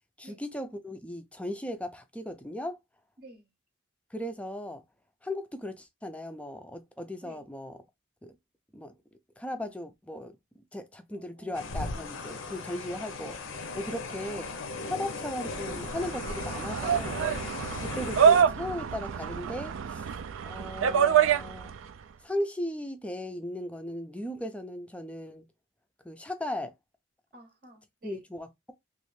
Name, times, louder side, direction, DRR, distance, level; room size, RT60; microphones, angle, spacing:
voice 1, 0.2-2.8 4.1-4.8 5.2-7.8 8.2-8.4 8.7-8.9 9.4-14.4 14.8-17.2 17.8-20.1 20.4-21.7 22.2-25.5 26.0-26.7 28.0-28.7, left 1 dB, 5° left, 0.3 m, -37 dB
voice 2, 11.1-11.6 13.9-14.0 27.3-28.2, right 1 dB, 45° right, 0.7 m, -51 dB
sound 1, 11.5-18.4, left 3 dB, 85° left, 0.6 m, -37 dB
sound 2, 15.5-21.9, right 8 dB, 85° right, 0.4 m, -26 dB
3.1 x 2.4 x 3.1 m
head